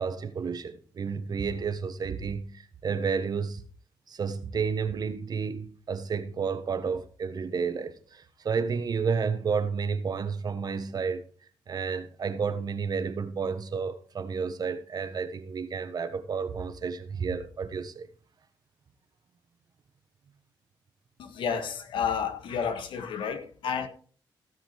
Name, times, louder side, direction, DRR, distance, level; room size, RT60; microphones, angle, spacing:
voice 1, 0.0-3.6 4.1-11.2 11.7-18.1, right 5 dB, 55° right, 1.4 m, -31 dB
voice 2, 21.2-23.9, left 7 dB, 85° left, 1.7 m, -31 dB
16.5 x 5.7 x 4.6 m
cardioid pair, 80°, 8 cm